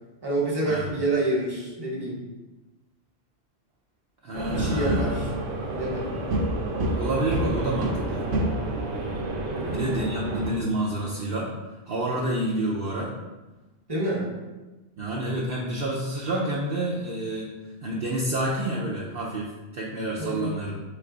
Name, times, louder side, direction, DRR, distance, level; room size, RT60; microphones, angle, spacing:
voice 1, 0.2-2.2 4.5-5.3 5.7-6.2 9.4-9.8 13.9-14.3 20.2-20.6, right 2 dB, 20° right, -3 dB, 1.0 m, -28 dB
voice 2, 4.2-5.2 7.0-8.3 9.6-13.2 15.0-17.5 17.8-20.8, right 1 dB, 60° right, -4 dB, 0.7 m, -29 dB
sound 1, 4.3-10.5, right 1 dB, 85° right, 1.0 m, -28 dB
4.1 x 3.3 x 3.8 m, 1.1 s
omnidirectional pair, 1.2 m